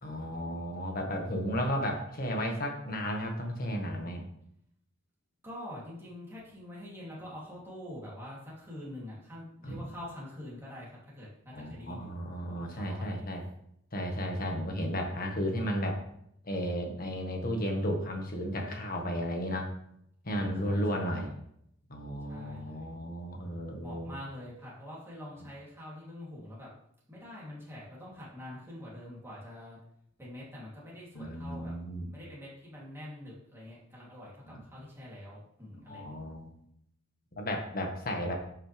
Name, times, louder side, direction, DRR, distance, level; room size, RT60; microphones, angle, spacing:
voice 1, 0.0-4.2 9.6-9.8 11.5-13.4 13.9-16.0 16.4-19.7 20.2-21.3 21.9-24.1 31.1-32.1 35.9-36.5 37.4-38.4, equal, 50° left, 2 dB, 1.7 m, -34 dB
voice 2, 5.4-12.2 12.6-13.3 20.6-21.3 22.3-22.9 23.8-26.7 27.1-29.8 30.2-36.2, left 1 dB, 15° right, -6 dB, 3.1 m, -45 dB
10.5 x 5.8 x 3.5 m, 0.73 s
head